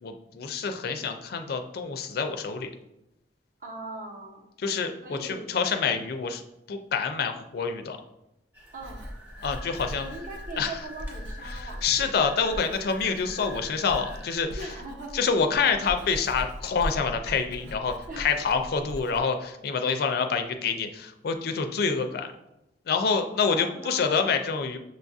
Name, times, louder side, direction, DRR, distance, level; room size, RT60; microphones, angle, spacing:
voice 1, 0.0-2.7 4.6-6.4 6.7-8.0 9.4-10.1 10.6-10.7 11.5-14.5 15.1-22.3 22.9-24.8, left 5 dB, 55° left, 6 dB, 0.4 m, -27 dB
voice 2, 3.6-4.4 5.0-5.5 8.7-9.1 10.0-11.8 14.5-15.2 18.1-18.3 23.5-24.3, right 2 dB, 45° right, 0 dB, 0.8 m, -40 dB
sound 1, 8.5-14.3, left 1 dB, 10° right, 0.8 m, -46 dB
Writing, 8.8-19.2, equal, 80° right, 0.6 m, -40 dB
6.3 x 2.3 x 2.6 m, 0.88 s
head